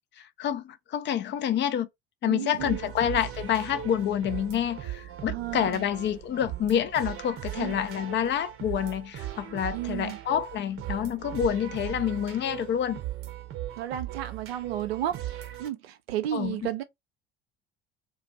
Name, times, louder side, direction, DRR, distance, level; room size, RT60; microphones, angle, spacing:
voice 1, 0.2-1.9 2.2-13.0 16.3-16.6, left 9 dB, 35° left, 0.5 m, -28 dB
voice 2, 2.2-2.9 5.3-5.8 7.5-7.7 9.7-10.2 13.8-15.3 15.6-16.8, right 12 dB, 75° right, 0.5 m, -33 dB
sound 1, 2.6-15.7, right 12 dB, 45° right, 0.8 m, -38 dB
2.5 x 2.3 x 4.0 m
figure-of-eight pair, 60°, 31 cm